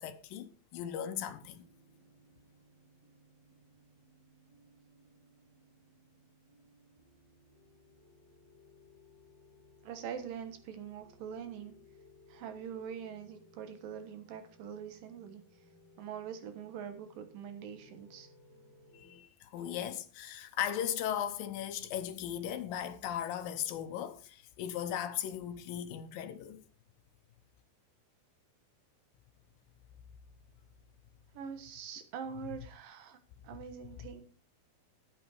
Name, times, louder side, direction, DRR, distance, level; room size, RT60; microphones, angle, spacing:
voice 1, 0.0-1.7 18.9-26.6, left 10 dB, 75° left, 2.6 m, -37 dB
sound 1, 1.2-19.2, left 2 dB, 10° right, 3.2 m, -62 dB
voice 2, 9.8-11.7 12.3-15.4 16.0-18.3 31.3-33.2 33.4-34.2, right 7 dB, 70° right, 2.9 m, -44 dB
12.0 x 8.5 x 4.9 m
omnidirectional pair, 4.2 m